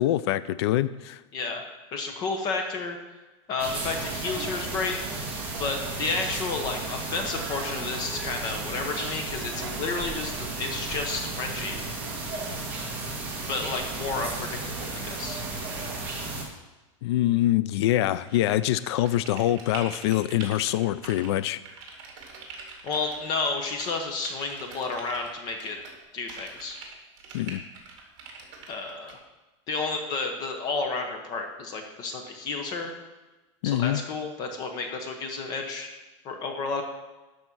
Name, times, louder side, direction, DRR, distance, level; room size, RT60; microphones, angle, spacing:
voice 1, 0.0-1.2 17.0-21.6 27.3-27.6 33.6-34.0, left 13 dB, 55° left, 15 dB, 0.4 m, -24 dB
voice 2, 1.9-3.0 3.5-5.3 5.6-11.8 13.5-15.4 22.8-25.8 26.1-26.8 28.7-29.2 29.7-32.9 33.6-35.9 36.2-36.8, left 4 dB, 25° left, 4 dB, 0.9 m, -31 dB
sound 1, 3.6-16.4, right 3 dB, 10° right, 1.5 m, -34 dB
sound 2, 18.2-21.4 21.6-23.5 23.8-26.0 26.3-29.2, right 4 dB, 45° right, 2.2 m, -44 dB
12.0 x 4.3 x 6.1 m, 1.1 s
supercardioid pair, 180°, 16 cm